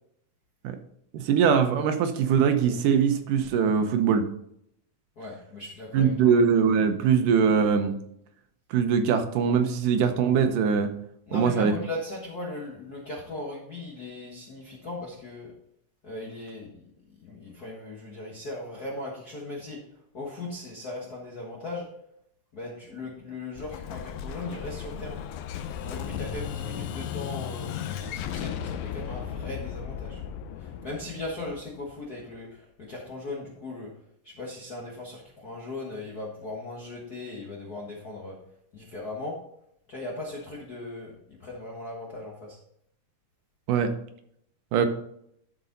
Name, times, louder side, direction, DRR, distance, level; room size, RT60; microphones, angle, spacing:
voice 1, 1.1-4.3 5.9-7.9 8.7-10.9 11.3-11.7 43.7-43.9 44.7-44.9, right 6 dB, 75° right, 7 dB, 2.3 m, -22 dB
voice 2, 5.2-6.3 11.3-15.5 16.0-16.8 17.2-19.8 20.1-21.8 22.5-25.2 25.7-30.2 30.6-33.9 34.2-38.4 38.7-39.4 39.9-42.6, left 2 dB, 50° left, -4 dB, 1.1 m, -38 dB
Explosion, 23.6-32.2, left 9 dB, 75° left, 1.9 m, -36 dB
12.5 x 5.3 x 3.9 m, 0.73 s
omnidirectional pair, 3.9 m